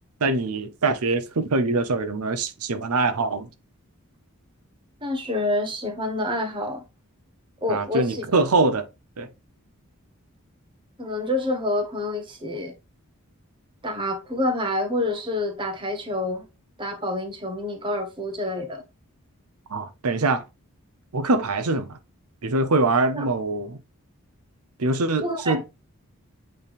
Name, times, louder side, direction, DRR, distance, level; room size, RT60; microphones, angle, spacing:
voice 1, 0.2-3.5 7.7-8.8 9.2-9.3 19.7-20.4 21.1-22.0 22.4-23.8 24.8-25.7, right 3 dB, 85° right, 0.8 m, -23 dB
voice 2, 5.0-6.8 7.6-8.2 11.0-12.7 13.8-16.4 16.8-18.8 23.1-23.2 25.2-25.7, left 1 dB, 20° right, 1.2 m, -27 dB
8.2 x 3.4 x 3.4 m
head